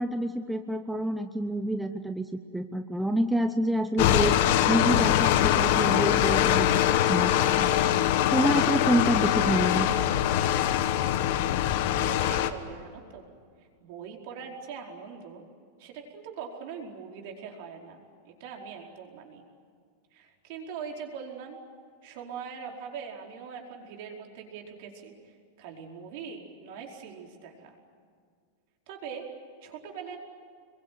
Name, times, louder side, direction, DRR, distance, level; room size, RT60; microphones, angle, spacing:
voice 1, 0.0-7.7 8.3-9.9, right 1 dB, 5° right, 6 dB, 0.7 m, -28 dB
sound 1, 4.0-12.5, left 11 dB, 50° left, 1.5 m, -23 dB
voice 2, 11.8-13.3 13.8-15.4 15.8-19.4 20.1-21.6 22.0-27.8 28.9-29.3 29.6-30.2, right 6 dB, 50° right, 1 dB, 4.8 m, -42 dB
27.5 x 22.5 x 9.5 m, 2.1 s
supercardioid pair, 170°, 0 cm